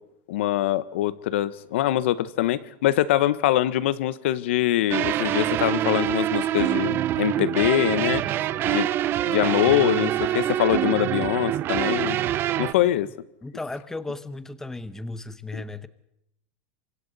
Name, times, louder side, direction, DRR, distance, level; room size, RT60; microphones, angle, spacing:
voice 1, 0.3-8.2 8.6-8.9 9.2-12.2 12.6-13.1 15.5-15.6, left 13 dB, 80° left, 17 dB, 1.1 m, -23 dB
sound 1, 4.9-12.7, right 12 dB, 35° right, 0.8 m, -25 dB
voice 2, 13.4-15.9, left 2 dB, 5° left, 14 dB, 1.0 m, -35 dB
26.5 x 24.5 x 4.1 m, 0.78 s
supercardioid pair, 140°, 6 cm